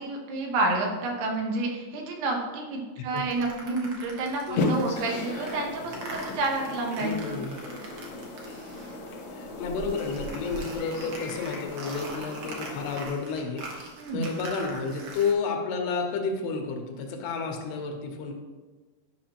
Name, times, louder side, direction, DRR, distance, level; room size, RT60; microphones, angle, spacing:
voice 1, 0.0-7.4 14.0-14.3, right 2 dB, 85° right, 1 dB, 3.2 m, -29 dB
sound 1, 3.2-9.2 9.4-15.3, right 2 dB, 70° right, 1.5 m, -42 dB
sound 2, 4.6-13.1, left 2 dB, 65° left, 1.7 m, -35 dB
voice 2, 7.0-7.6 9.3-18.3, left 4 dB, 80° left, 3 dB, 2.9 m, -31 dB
10.5 x 5.8 x 2.9 m, 1.3 s
omnidirectional pair, 4.6 m